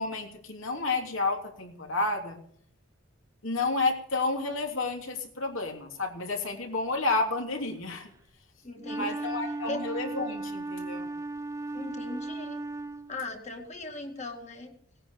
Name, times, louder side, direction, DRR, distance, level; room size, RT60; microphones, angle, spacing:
voice 1, 0.0-2.4 3.4-8.1 8.9-11.1, left 3 dB, 70° left, 2 dB, 3.1 m, -30 dB
voice 2, 8.6-9.4 9.7-9.9 11.7-12.6 13.1-14.7, left 2 dB, 30° left, 4 dB, 2.1 m, -39 dB
Wind instrument woodwind instrument, 8.8-13.3, right 2 dB, 15° right, 0.5 m, -36 dB
18.5 x 9.9 x 7.2 m, 0.63 s
head